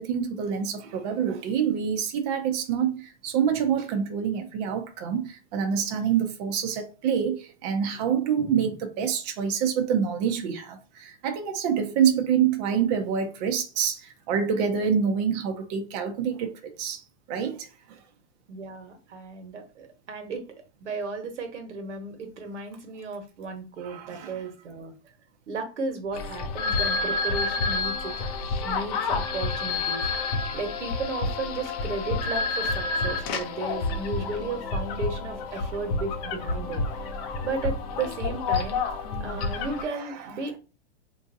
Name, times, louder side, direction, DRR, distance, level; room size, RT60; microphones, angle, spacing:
voice 1, 0.0-18.0 23.8-24.4 39.9-40.4, right 7 dB, 40° right, 0.5 m, -27 dB
voice 2, 18.5-20.4 20.8-24.9 25.5-28.3 28.6-30.0 30.5-37.1 37.4-38.8 39.2-40.6, right 3 dB, 85° right, 1.2 m, -34 dB
sound 1, 26.1-39.8, left 3 dB, 35° left, 0.5 m, -29 dB
3.7 x 2.6 x 2.6 m
hypercardioid pair, 135°, 35 cm